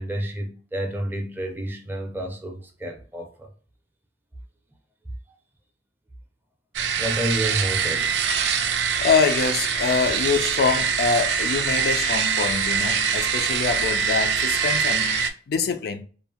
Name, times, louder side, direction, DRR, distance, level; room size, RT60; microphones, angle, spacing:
voice 1, 0.0-3.5 6.9-8.2, right 1 dB, 10° right, 0.5 m, -30 dB
sound 1, 6.7-15.3, right 6 dB, 70° right, 0.3 m, -24 dB
voice 2, 9.0-16.0, left 5 dB, 60° left, 0.3 m, -25 dB
2.6 x 2.0 x 2.8 m
head